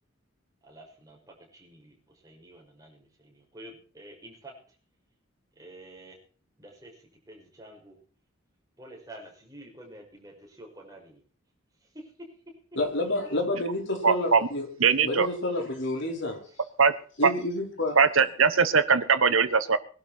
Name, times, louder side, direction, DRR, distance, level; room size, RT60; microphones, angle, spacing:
voice 1, 0.6-4.5 5.5-6.2 6.6-8.0 8.8-11.2 11.8-12.1, right 1 dB, 20° right, -1 dB, 6.5 m, -49 dB
voice 2, 12.8-14.7 15.0-16.4 17.2-18.0, left 1 dB, 60° left, 2 dB, 5.0 m, -29 dB
voice 3, 14.0-14.4 14.8-15.3 16.8-16.9 17.2-17.3 18.0-19.8, right 5 dB, 85° right, 12 dB, 1.4 m, -21 dB
21.5 x 12.0 x 4.6 m, 0.41 s
head